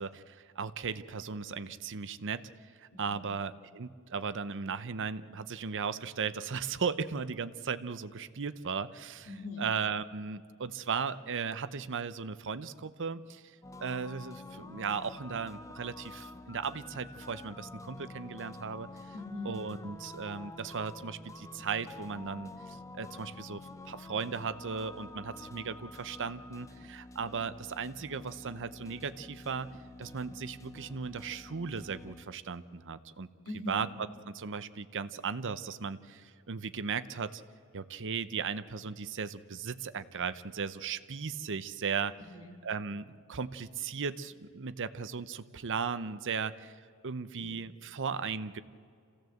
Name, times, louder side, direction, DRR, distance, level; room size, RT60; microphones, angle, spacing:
voice 1, 0.0-2.5 2.8-9.3 9.6-13.4 13.8-18.9 19.4-33.3 33.7-33.9 34.3-37.4 37.7-42.1 42.6-46.8 47.0-48.6, right 5 dB, 55° right, 13 dB, 0.7 m, -36 dB
voice 2, 2.9-3.2 9.3-9.7 19.1-19.5 33.4-33.9 42.2-42.6 47.4-47.5, left 1 dB, 70° left, 0 dB, 2.9 m, -41 dB
sound 1, 13.6-32.2, left 2 dB, 15° left, 0.7 m, -48 dB
27.0 x 16.0 x 7.9 m, 2.3 s
head